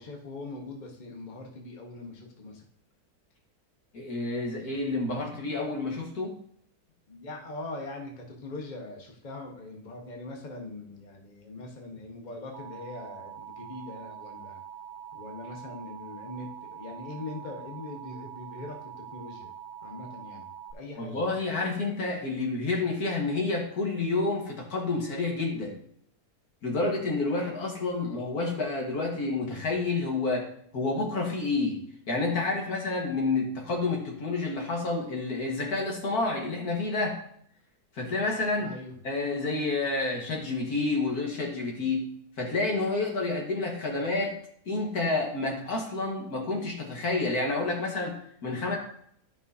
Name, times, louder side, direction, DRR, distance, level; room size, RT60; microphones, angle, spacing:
voice 1, 0.0-2.6 7.1-14.6 15.1-19.5 19.8-21.2 28.0-28.3 38.6-39.0 43.9-44.0, left 2 dB, 30° left, 1 dB, 1.1 m, -42 dB
voice 2, 3.9-6.4 21.0-25.7 26.6-30.5 30.7-37.2 38.0-38.7 39.0-42.1 42.4-44.4 44.7-48.8, left 3 dB, 65° left, 0 dB, 2.0 m, -29 dB
Alarm, 12.5-20.7, right 8 dB, 90° right, 1.4 m, -44 dB
12.0 x 5.6 x 2.7 m, 0.67 s
omnidirectional pair, 1.7 m